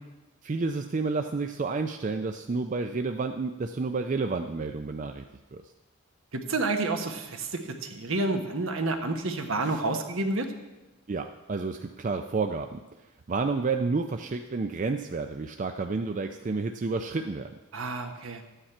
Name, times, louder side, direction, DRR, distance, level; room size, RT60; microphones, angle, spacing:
voice 1, 0.4-5.2 5.5-5.6 9.6-9.8 11.1-12.8 13.3-17.5, right 4 dB, 35° right, 6 dB, 0.4 m, -30 dB
voice 2, 6.3-10.5 17.7-18.4, right 2 dB, 65° right, 5 dB, 1.2 m, -29 dB
12.5 x 8.9 x 4.4 m, 1.1 s
head